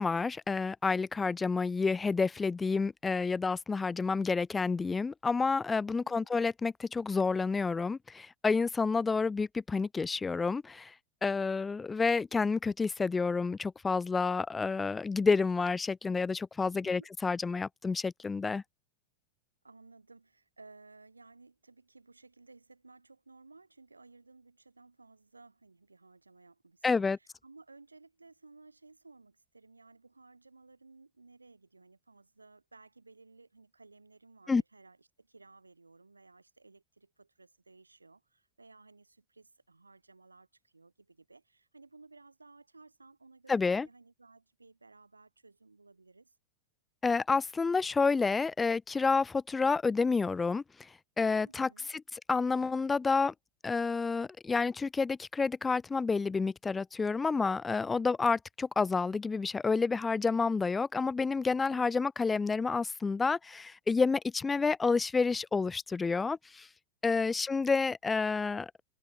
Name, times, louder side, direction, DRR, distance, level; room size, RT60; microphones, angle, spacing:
voice 1, 0.0-10.9 11.2-18.6 26.8-27.2 34.5-34.6 43.5-43.9 47.0-50.6 51.2-51.7 52.3-53.3 53.6-66.7 67.0-68.7, left 4 dB, 15° left, 0.3 m, -29 dB
voice 2, 5.9-6.3 16.7-17.1 19.6-46.3 51.4-51.9 61.7-61.9 67.1-67.5, right 3 dB, 80° right, 4.3 m, -58 dB
figure-of-eight pair, 90°, 0 cm